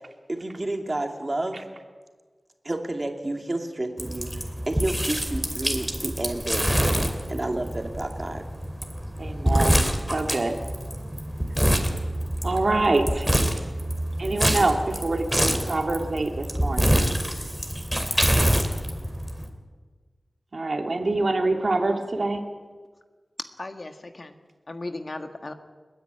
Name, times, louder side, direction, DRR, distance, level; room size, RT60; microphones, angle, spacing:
voice 1, 0.3-1.6 2.6-6.8 7.3-8.4, right 2 dB, 35° right, 4 dB, 2.6 m, -30 dB
sound 1, 4.0-19.5, equal, ahead, 2.7 m, -26 dB
voice 2, 9.2-9.8 10.1-10.6 12.4-13.3 14.2-17.0 20.5-22.4, right 2 dB, 60° right, 4 dB, 2.3 m, -25 dB
voice 3, 23.6-24.4 24.7-25.5, left 2 dB, 50° left, 7 dB, 1.6 m, -36 dB
30.0 x 10.0 x 9.0 m, 1.4 s
wide cardioid pair, 75°, 0 cm